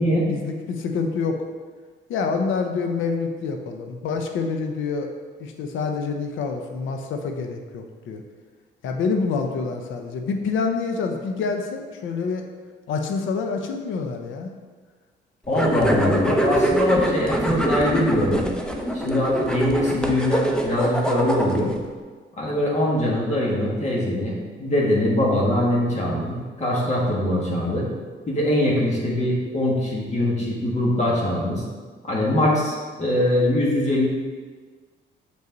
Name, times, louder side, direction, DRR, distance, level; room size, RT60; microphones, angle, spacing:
voice 1, 0.3-1.4 2.1-5.1 5.4-8.2 8.8-12.5 12.9-14.5 16.0-16.2, left 4 dB, 80° left, 4 dB, 0.8 m, -27 dB
voice 2, 15.5-18.4 18.9-21.7 22.4-27.9 28.3-31.6 32.1-34.1, left 1 dB, 35° left, -4 dB, 1.8 m, -22 dB
sound 1, 15.5-21.8, equal, 5° left, 0.8 m, -24 dB
6.5 x 5.5 x 4.0 m, 1.5 s
cardioid pair, 90°, 20 cm